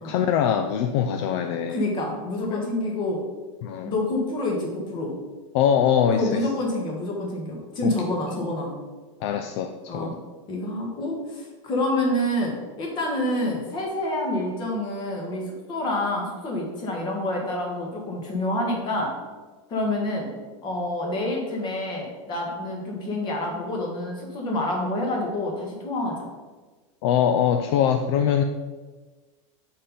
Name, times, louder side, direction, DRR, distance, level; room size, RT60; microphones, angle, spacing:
voice 1, 0.0-1.8 2.5-2.6 3.6-3.9 5.5-6.5 7.8-7.9 9.2-10.2 27.0-28.4, left 8 dB, 55° left, 6 dB, 0.4 m, -23 dB
voice 2, 1.7-3.2 3.8-5.1 6.1-8.7 9.9-10.2 10.5-19.1 19.7-20.3 20.6-26.3, left 1 dB, 25° left, 0 dB, 1.5 m, -27 dB
5.2 x 4.3 x 5.4 m, 1.3 s
supercardioid pair, 155°, 17 cm